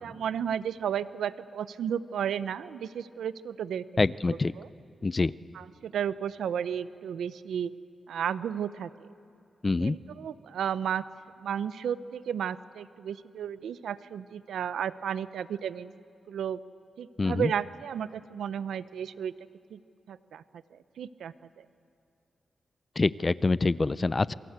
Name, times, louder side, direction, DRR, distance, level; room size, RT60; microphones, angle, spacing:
voice 1, 0.0-3.8 4.6-4.7 5.5-7.7 8.1-8.9 9.8-11.0 11.4-15.9 16.3-16.6 17.0-19.3 19.7-19.8 20.1-20.4 20.7-21.3, right 8 dB, 90° right, 15 dB, 0.7 m, -33 dB
voice 2, 4.0-4.5 5.0-5.3 9.6-10.0 17.2-17.5 23.0-24.4, left 3 dB, 35° left, 18 dB, 0.6 m, -25 dB
26.5 x 24.5 x 8.2 m, 2.6 s
cardioid pair, 75°, 0 cm